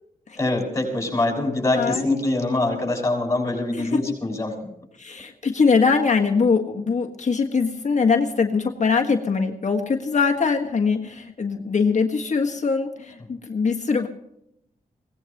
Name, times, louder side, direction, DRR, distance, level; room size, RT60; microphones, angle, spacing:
voice 1, 0.4-4.7, left 2 dB, 20° left, 1 dB, 6.9 m, -24 dB
voice 2, 1.7-2.5 3.7-4.0 5.0-14.1, left 5 dB, 55° left, 3 dB, 1.6 m, -22 dB
22.5 x 18.0 x 3.0 m, 0.78 s
cardioid pair, 70°, 15 cm